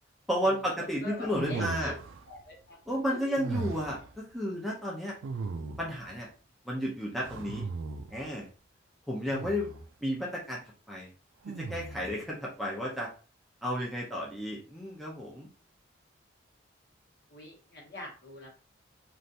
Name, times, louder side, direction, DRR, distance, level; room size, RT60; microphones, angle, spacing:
voice 1, 0.3-2.0 2.9-5.1 5.8-6.3 6.7-7.7 8.1-8.5 9.1-9.7 10.0-10.6 10.9-11.1 11.6-13.1 13.6-15.5, equal, ahead, -5 dB, 0.5 m, -32 dB
voice 2, 1.0-1.9 2.3-2.8 3.1-3.5 17.3-18.5, left 1 dB, 55° left, -2 dB, 1.1 m, -44 dB
sound 1, 1.3-2.3 3.4-4.1 5.2-6.1 7.2-8.2 9.3-9.9 11.4-12.2, right 4 dB, 75° right, 0.4 m, -37 dB
3.3 x 2.5 x 2.7 m, 0.37 s
head